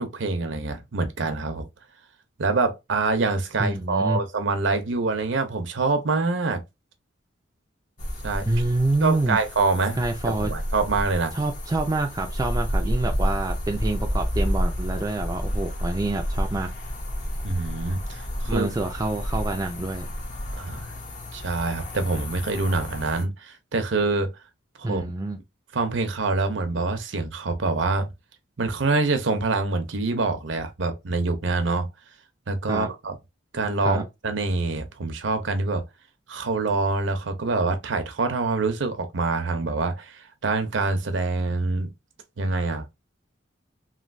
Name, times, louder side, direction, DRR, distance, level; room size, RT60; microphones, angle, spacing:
voice 1, 0.0-1.7 2.4-6.6 8.2-8.5 9.0-10.0 10.2-11.3 17.4-18.7 20.6-20.9 21.3-24.3 24.8-25.0 25.7-28.1 28.6-31.9 32.5-33.2 33.5-35.8 36.3-41.9 42.4-42.8, right 3 dB, 70° right, 0.6 m, -25 dB
voice 2, 3.6-4.2 8.4-9.4 10.0-10.5 11.3-16.7 18.5-20.1 24.8-25.4 32.7-32.9 33.8-34.0, right 2 dB, 20° right, 0.3 m, -27 dB
sound 1, 8.0-23.3, equal, 40° left, 0.6 m, -30 dB
3.1 x 2.6 x 2.5 m
head